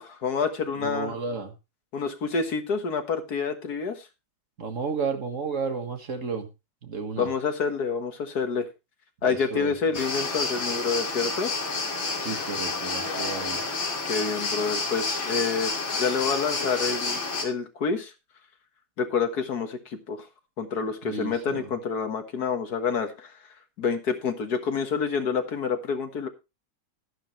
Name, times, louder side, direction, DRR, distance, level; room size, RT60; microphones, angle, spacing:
voice 1, 0.0-1.2 1.9-4.1 7.2-8.7 9.2-11.5 14.1-18.1 19.0-20.3 20.6-23.3 23.8-26.3, left 5 dB, 50° left, 6 dB, 1.9 m, -28 dB
voice 2, 0.8-1.5 4.6-6.5 6.8-7.3 9.2-9.7 12.2-13.6 21.1-21.7, right 5 dB, 40° right, 6 dB, 1.8 m, -32 dB
sound 1, 9.9-17.4, left 3 dB, 70° left, 3.1 m, -29 dB
11.5 x 11.5 x 3.2 m, 0.26 s
omnidirectional pair, 2.3 m